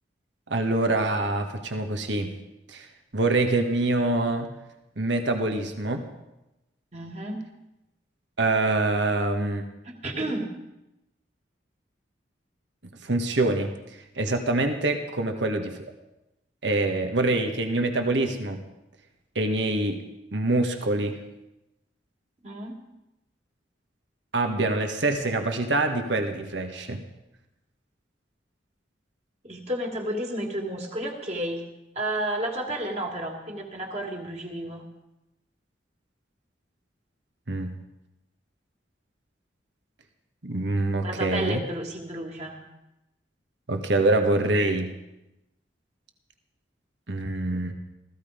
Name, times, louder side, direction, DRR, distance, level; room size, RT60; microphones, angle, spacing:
voice 1, 0.5-2.3 2.7-2.9 3.1-4.5 5.0-6.1 8.4-9.6 13.0-13.7 14.1-15.8 16.6-18.6 19.3-20.0 20.3-21.2 24.3-27.0 37.5-37.7 40.4-41.6 43.7-44.9 47.1-47.7, right 2 dB, 80° right, 5 dB, 1.6 m, -25 dB
voice 2, 6.9-7.4 9.8-10.5 22.4-22.8 29.4-31.6 31.9-34.8 41.0-42.6, right 1 dB, 35° right, 1 dB, 2.5 m, -31 dB
16.0 x 15.0 x 5.1 m, 0.95 s
head